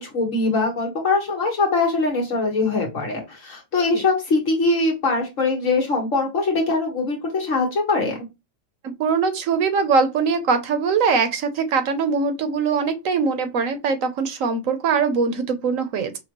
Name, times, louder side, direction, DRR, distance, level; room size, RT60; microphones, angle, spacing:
voice 1, 0.0-8.2, left 3 dB, 65° left, 0 dB, 1.9 m, -22 dB
voice 2, 9.0-16.1, right 5 dB, 75° right, 9 dB, 1.2 m, -22 dB
5.7 x 2.4 x 3.0 m, 0.23 s
omnidirectional pair, 1.4 m